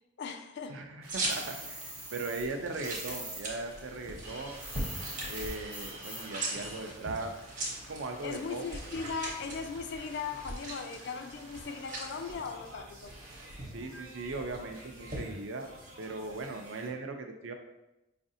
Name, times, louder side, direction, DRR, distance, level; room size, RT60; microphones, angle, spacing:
voice 1, 0.2-0.8 8.2-13.1, left 5 dB, 55° left, 6 dB, 0.3 m, -38 dB
voice 2, 0.7-4.6 5.3-7.3 7.9-8.6 13.6-15.7 16.0-17.5, right 3 dB, 65° right, 5 dB, 0.5 m, -39 dB
sound 1, 1.0-16.9, right 1 dB, 90° right, 0.9 m, -51 dB
sound 2, 1.1-15.2, right 2 dB, 40° right, 0.8 m, -41 dB
sound 3, 1.3-3.4 3.7-6.4, right 1 dB, 10° right, 0.5 m, -43 dB
4.8 x 2.5 x 2.6 m, 0.94 s
head